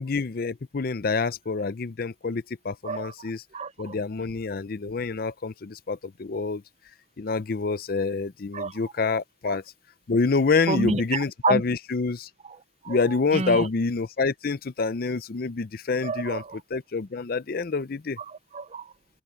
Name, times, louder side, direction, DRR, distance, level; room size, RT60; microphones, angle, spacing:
voice 1, 0.0-3.4 3.8-6.6 7.2-9.6 10.1-12.3 12.9-16.4 16.7-18.2, left 4 dB, 55° left, 0.6 m, -27 dB
voice 2, 2.8-3.9 8.5-8.9 9.5-9.6 10.7-11.6 12.4-12.6 12.8-13.7 16.0-16.6 18.2-18.9, right 4 dB, 35° right, 0.6 m, -30 dB
head